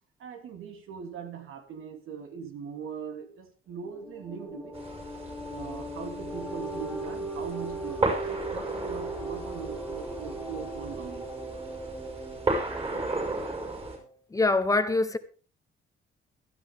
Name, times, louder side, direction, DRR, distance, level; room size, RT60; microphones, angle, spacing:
voice 1, 0.2-4.8 5.3-11.3, right 7 dB, 85° right, 3.1 m, -41 dB
sound 1, 3.8-14.1, right 2 dB, 5° right, 2.5 m, -38 dB
sound 2, 4.7-14.0, right 2 dB, 25° right, 5.3 m, -35 dB
voice 2, 14.3-15.2, left 3 dB, 15° left, 1.0 m, -24 dB
16.5 x 13.0 x 3.6 m
cardioid pair, 145°, 21 cm